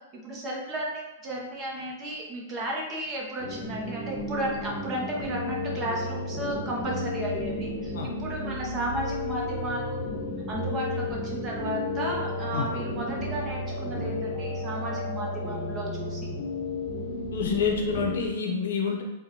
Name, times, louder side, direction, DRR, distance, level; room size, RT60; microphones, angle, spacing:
voice 1, 0.1-10.1 10.5-16.3, right 1 dB, 20° right, -2 dB, 0.7 m, -34 dB
sound 1, 3.4-18.3, left 1 dB, 30° left, 1.0 m, -32 dB
voice 2, 17.3-19.0, left 6 dB, 80° left, 1 dB, 0.7 m, -27 dB
4.1 x 2.2 x 2.9 m, 1.0 s
supercardioid pair, 165°, 0 cm